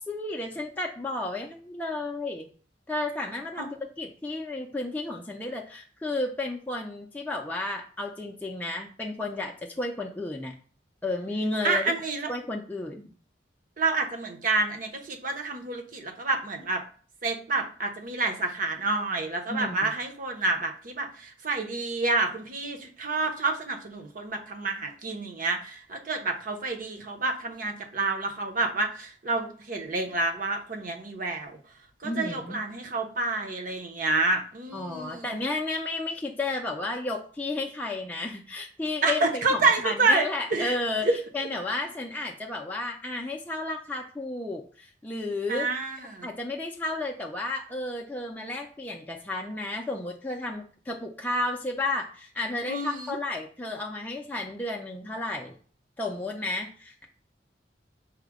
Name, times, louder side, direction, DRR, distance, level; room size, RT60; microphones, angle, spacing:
voice 1, 0.0-2.5 2.9-10.5 11.0-11.9 12.3-13.1 19.5-19.9 32.0-32.6 34.7-41.1 41.3-45.7 46.2-55.6 56.0-57.0, left 2 dB, 10° left, 0 dB, 0.4 m, -32 dB
voice 2, 11.6-12.3 13.8-16.8 17.2-31.6 32.0-35.4 39.0-41.2 45.5-46.3 52.7-53.2, right 3 dB, 50° right, 3 dB, 0.8 m, -28 dB
4.9 x 2.1 x 4.7 m, 0.42 s
head